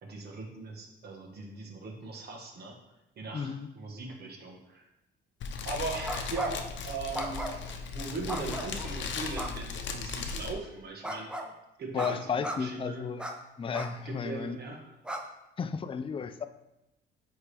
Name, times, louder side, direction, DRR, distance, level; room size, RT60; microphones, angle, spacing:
voice 1, 0.0-2.8 3.2-4.8 5.6-7.4 7.9-11.3 11.8-13.0 14.0-14.8, right 3 dB, 55° right, 0 dB, 1.4 m, -39 dB
voice 2, 3.3-3.7 11.9-13.2 13.6-14.6 15.6-16.5, left 6 dB, 25° left, 10 dB, 0.4 m, -33 dB
Fire, 5.4-10.5, left 5 dB, 65° left, 0.7 m, -37 dB
sound 1, 6.0-6.7 7.1-7.7 8.3-8.9 9.4-9.5 11.0-11.5 12.0-12.1 12.4-12.6 13.2-13.3 13.7-13.9 14.4-14.5 15.0-15.2, right 1 dB, 5° right, 0.8 m, -36 dB
9.4 x 3.6 x 3.4 m, 0.89 s
cardioid pair, 90°, 20 cm